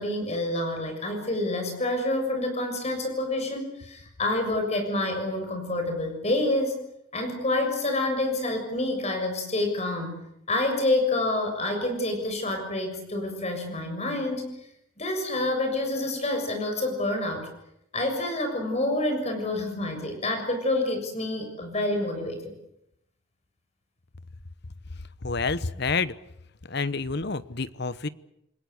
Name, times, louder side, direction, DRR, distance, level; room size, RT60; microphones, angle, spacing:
voice 1, 0.0-6.7 7.1-10.2 10.5-14.5 15.0-17.5 17.9-22.5, left 2 dB, 35° left, 5 dB, 6.9 m, -28 dB
voice 2, 25.2-26.1 26.7-28.1, left 4 dB, 55° left, 16 dB, 1.0 m, -28 dB
29.0 x 21.0 x 8.1 m, 0.78 s
head